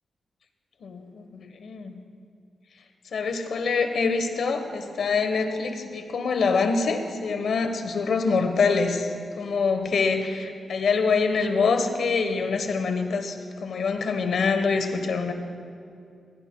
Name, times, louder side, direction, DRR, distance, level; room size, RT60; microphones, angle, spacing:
voice 1, 0.8-1.9 3.1-15.3, left 4 dB, 65° left, 7 dB, 1.1 m, -25 dB
20.5 x 16.0 x 2.3 m, 2.4 s
wide cardioid pair, 160°, 0 cm